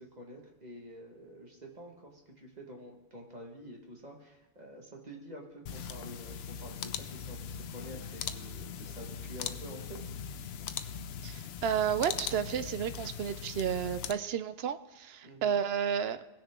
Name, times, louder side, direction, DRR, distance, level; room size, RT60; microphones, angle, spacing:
voice 1, 0.0-10.0 15.2-15.6, equal, 40° right, 0 dB, 1.7 m, -48 dB
sound 1, 5.7-14.1, left 7 dB, 75° left, 0.8 m, -40 dB
voice 2, 11.2-16.2, right 8 dB, 75° right, 12 dB, 0.8 m, -32 dB
17.5 x 6.6 x 3.6 m, 1.0 s
omnidirectional pair, 1.1 m